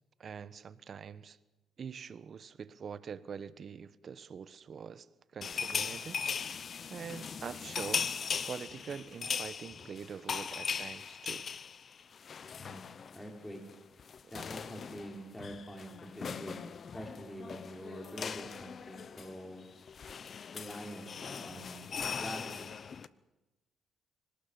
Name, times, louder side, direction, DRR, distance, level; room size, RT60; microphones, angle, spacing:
voice 1, 0.2-1.4 1.8-5.1 5.3-6.2 6.6-8.1 8.5-11.5 14.2-14.3, right 6 dB, 50° right, 1.1 m, -44 dB
sound 1, 5.4-13.3 13.5-13.7 14.0-23.1, left 6 dB, 50° left, 0.8 m, -39 dB
voice 2, 12.5-13.6 14.3-16.6 16.9-19.7 20.5-22.7, equal, 10° left, 6.0 m, -45 dB
25.5 x 18.5 x 7.0 m
cardioid pair, 85°, 0 cm